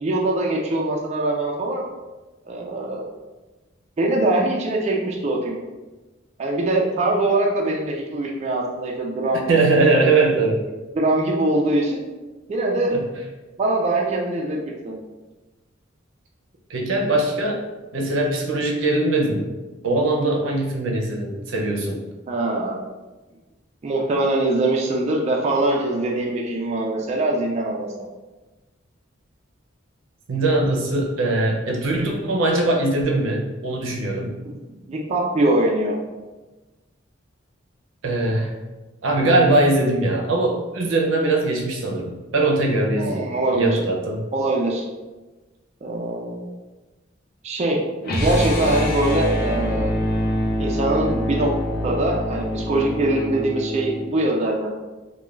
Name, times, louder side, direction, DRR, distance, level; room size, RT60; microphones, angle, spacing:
voice 1, 0.0-1.8 2.5-3.0 4.0-5.6 6.4-9.5 10.9-12.0 12.5-13.1 13.6-14.6 14.8-14.9 22.3-22.8 23.8-27.9 34.4-36.0 43.0-43.8 44.3-44.8 45.8-46.5 47.4-49.9 50.6-51.5 51.8-54.7, right 2 dB, 35° right, -1 dB, 0.3 m, -22 dB
voice 2, 9.5-10.6 12.9-13.0 16.7-19.4 19.8-22.0 30.3-34.4 38.0-38.5 39.0-43.3 43.5-44.2, right 2 dB, 85° right, 1 dB, 0.5 m, -21 dB
sound 1, 48.0-54.1, equal, 50° left, 0.5 m, -25 dB
2.3 x 2.2 x 3.1 m, 1.2 s
head